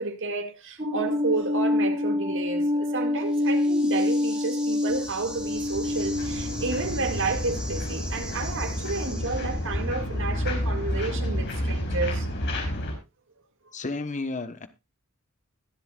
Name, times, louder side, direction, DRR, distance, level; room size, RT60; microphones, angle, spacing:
voice 1, 0.0-12.3 13.7-13.8, right 3 dB, 60° right, 2.0 m, -31 dB
sound 1, 0.8-7.3, left 1 dB, 30° right, 2.9 m, -27 dB
sound 2, 3.2-9.9, right 1 dB, 5° right, 3.3 m, -42 dB
sound 3, 4.9-12.9, left 1 dB, 55° left, 4.8 m, -30 dB
voice 2, 13.7-14.7, left 3 dB, 35° left, 1.1 m, -32 dB
21.5 x 7.9 x 2.4 m
head